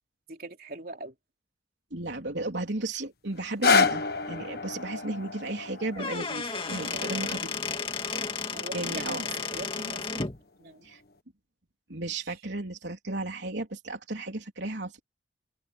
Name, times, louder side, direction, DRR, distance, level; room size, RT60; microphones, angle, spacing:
voice 1, 0.3-1.1 6.9-7.3 8.5-10.2 10.6-10.9, right 2 dB, 50° right, 3.9 m, -41 dB
voice 2, 1.9-7.6 8.7-9.2 10.8-11.0 11.9-15.0, right 2 dB, 75° right, 3.5 m, -34 dB
sound 1, 3.4-9.4 10.1-10.2, left 5 dB, 55° left, 1.6 m, -30 dB
Squeak / Wood, 5.8-10.4, left 4 dB, 30° left, 2.1 m, -33 dB
open air
head